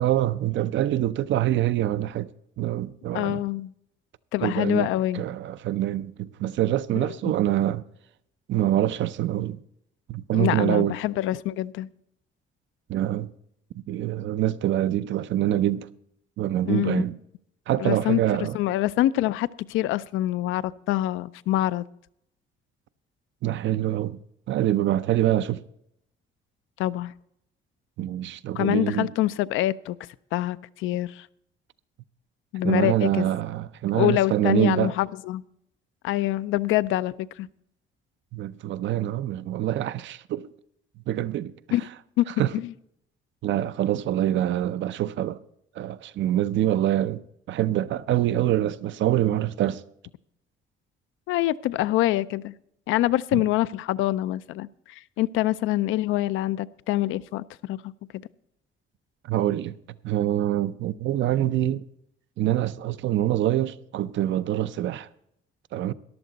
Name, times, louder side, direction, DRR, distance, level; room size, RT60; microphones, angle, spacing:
voice 1, 0.0-2.3 2.6-3.4 4.4-4.9 5.1-7.8 8.5-9.6 10.1-11.0 12.9-13.3 13.9-15.9 16.4-17.2 17.7-18.6 23.4-24.2 24.5-25.6 28.0-29.1 32.6-35.0 38.3-40.5 41.1-41.5 42.4-42.5 43.4-45.4 45.8-47.2 47.5-49.8 53.3-53.4 59.2-59.7 60.0-61.8 62.4-65.1 65.7-65.9, right 13 dB, 70° right, 0.5 m, -25 dB
voice 2, 3.1-3.7 4.3-5.2 7.0-7.3 10.3-11.9 16.7-17.0 17.8-21.8 26.8-27.1 28.6-30.0 30.3-31.3 32.5-33.3 33.9-35.4 36.0-37.5 41.7-41.8 42.2-42.3 42.5-42.7 51.3-52.5 52.9-54.7 55.2-57.8, left 15 dB, 85° left, 0.4 m, -25 dB
14.0 x 11.0 x 3.9 m
cardioid pair, 90°, 20 cm